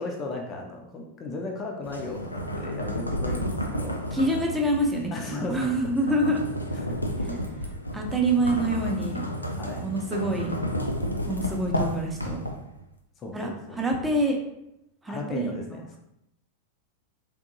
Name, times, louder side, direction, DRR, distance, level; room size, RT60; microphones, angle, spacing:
voice 1, 0.0-4.2 5.1-5.7 6.9-7.6 9.6-9.8 13.2-14.0 15.1-16.0, left 3 dB, 30° left, 1 dB, 0.5 m, -36 dB
sound 1, 1.8-12.8, equal, 85° left, 0.3 m, -32 dB
voice 2, 4.1-6.4 7.9-9.3 9.8-10.5 11.3-12.4 13.3-14.4 15.0-15.8, right 1 dB, 10° right, 1 dB, 0.6 m, -26 dB
3.5 x 2.6 x 2.6 m, 0.82 s
figure-of-eight pair, 90°, 0 cm